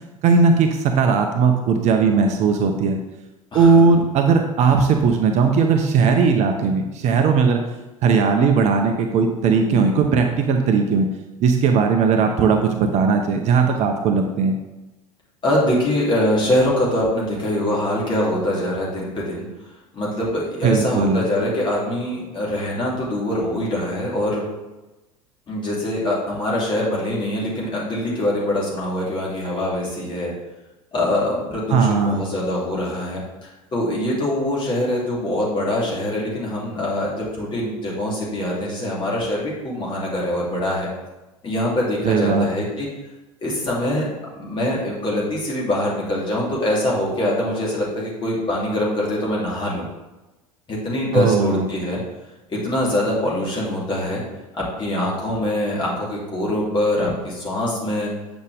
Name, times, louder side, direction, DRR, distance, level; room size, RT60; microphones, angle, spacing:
voice 1, 0.2-3.0 3.5-7.6 8.0-11.0 11.4-14.5 20.6-21.2 31.7-32.2 42.0-42.4 51.1-51.6, right 5 dB, 40° right, 4 dB, 0.8 m, -18 dB
voice 2, 3.5-3.9 15.4-19.5 19.9-24.4 25.5-30.3 30.9-40.9 41.4-42.9 43.4-49.9 50.7-52.0 52.5-54.2 54.6-58.1, left 1 dB, 25° left, -5 dB, 2.9 m, -23 dB
8.5 x 6.0 x 3.5 m, 1.1 s
figure-of-eight pair, 75°, 18 cm